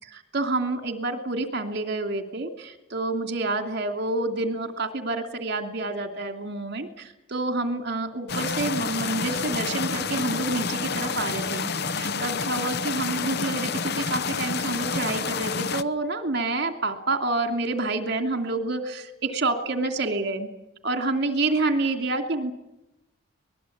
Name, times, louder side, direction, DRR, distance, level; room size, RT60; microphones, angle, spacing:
voice 1, 0.0-20.5 20.8-22.5, right 2 dB, 50° right, 6 dB, 2.8 m, -28 dB
sound 1, 8.3-15.8, left 5 dB, 50° left, 0.8 m, -29 dB
24.5 x 20.5 x 8.7 m, 0.92 s
head